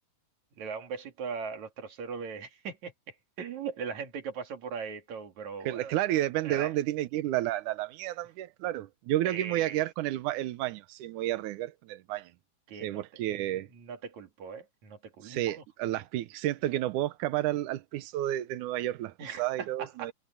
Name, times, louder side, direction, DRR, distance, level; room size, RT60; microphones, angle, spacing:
voice 1, 0.6-2.9 3.4-5.9 6.4-6.7 9.2-9.8 12.7-13.0 13.3-15.6 19.2-19.4 19.8-20.1, right 6 dB, 50° right, 3.7 m, -39 dB
voice 2, 5.7-12.3 12.8-13.7 15.2-20.1, right 14 dB, 75° right, 1.9 m, -31 dB
omnidirectional pair, 4.4 m